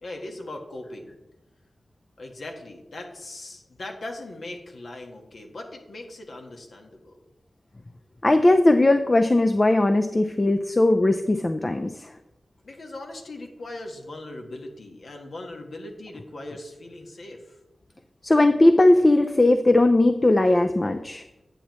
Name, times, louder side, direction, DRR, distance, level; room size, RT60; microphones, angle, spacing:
voice 1, 0.0-1.2 2.2-7.2 12.6-17.6, left 2 dB, 75° left, 2 dB, 1.4 m, -39 dB
voice 2, 8.2-12.1 18.2-21.2, left 2 dB, 35° left, 7 dB, 0.5 m, -19 dB
9.9 x 7.2 x 3.1 m, 0.99 s
cardioid pair, 55°, 0 cm